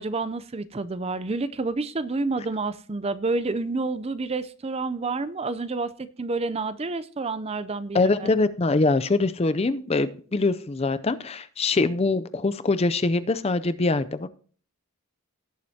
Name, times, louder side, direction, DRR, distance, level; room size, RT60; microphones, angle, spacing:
voice 1, 0.0-8.3, right 3 dB, 25° right, 14 dB, 0.5 m, -29 dB
voice 2, 7.9-14.3, left 3 dB, 25° left, 13 dB, 0.5 m, -23 dB
17.5 x 7.6 x 2.8 m, 0.42 s
head